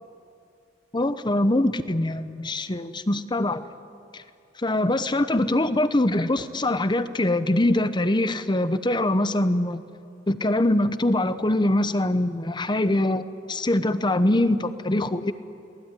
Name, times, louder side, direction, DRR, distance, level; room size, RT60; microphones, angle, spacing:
voice 1, 0.9-3.6 4.1-4.2 4.6-9.8 10.3-15.3, left 1 dB, 25° left, 12 dB, 0.9 m, -23 dB
27.5 x 18.5 x 9.9 m, 2.5 s
head